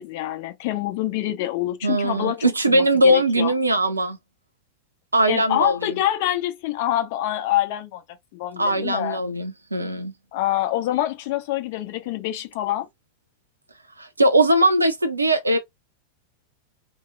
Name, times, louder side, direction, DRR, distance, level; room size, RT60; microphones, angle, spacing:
voice 1, 0.0-3.5 5.3-8.0 8.3-9.2 10.3-12.9, left 13 dB, 50° left, 0.8 m, -26 dB
voice 2, 1.8-4.2 5.1-5.9 8.6-10.1 14.0-15.6, right 1 dB, 80° right, 0.5 m, -20 dB
2.8 x 2.0 x 3.8 m
figure-of-eight pair, 90°, 0 cm